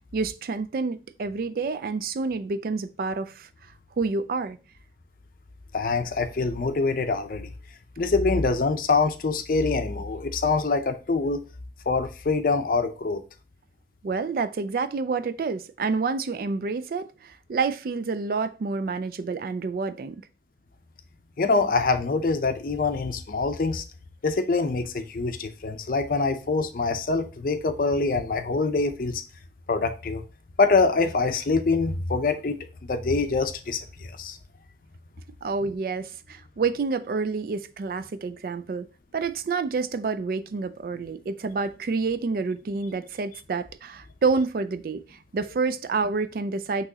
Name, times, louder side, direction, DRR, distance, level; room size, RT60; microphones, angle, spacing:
voice 1, 0.1-3.5 4.0-4.6 14.0-20.2 35.4-38.9 39.1-46.8, right 4 dB, 55° right, 0.3 m, -28 dB
voice 2, 5.7-7.5 8.0-11.5 11.9-13.2 21.4-23.8 24.2-29.2 29.7-30.2 30.6-34.4, left 3 dB, 50° left, 0.5 m, -25 dB
5.9 x 3.0 x 2.7 m
head